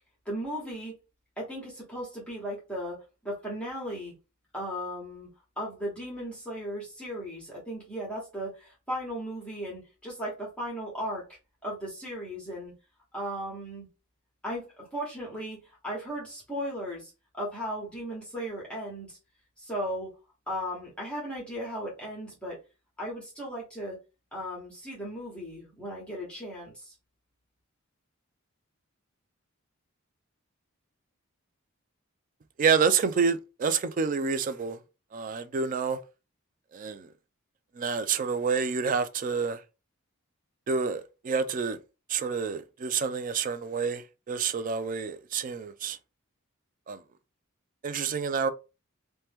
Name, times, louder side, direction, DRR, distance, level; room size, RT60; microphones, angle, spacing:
voice 1, 0.2-0.9 1.4-4.1 4.5-5.3 5.6-12.7 13.1-13.9 14.4-19.2 19.6-20.1 20.5-22.6 23.0-24.0 24.3-26.9, equal, 5° left, 1.0 m, -36 dB
voice 2, 32.6-34.8 35.1-36.0 36.7-37.1 37.8-39.6 40.7-41.8 42.1-46.0 46.9-47.0 47.8-48.5, right 5 dB, 40° right, 0.3 m, -28 dB
2.9 x 2.1 x 3.4 m
head